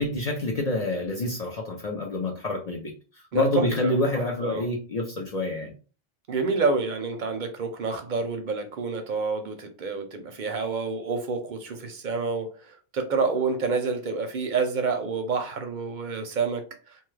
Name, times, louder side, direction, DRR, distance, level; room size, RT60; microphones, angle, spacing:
voice 1, 0.0-2.9 3.3-5.7, left 2 dB, 45° left, 0.6 m, -27 dB
voice 2, 3.3-3.9 4.4-4.7 6.3-16.7, right 4 dB, 55° right, 0.6 m, -28 dB
2.8 x 2.3 x 3.1 m
omnidirectional pair, 1.1 m